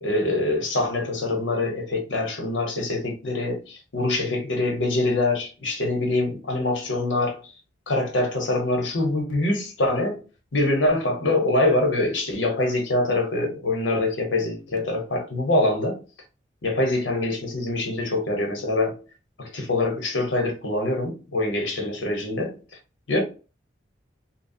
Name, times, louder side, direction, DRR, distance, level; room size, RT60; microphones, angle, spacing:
voice 1, 0.0-7.4 7.9-10.2 10.5-16.0 16.6-19.0 19.4-22.6 23.1-23.2, left 2 dB, 75° left, 1.0 m, -24 dB
2.8 x 2.2 x 2.7 m
head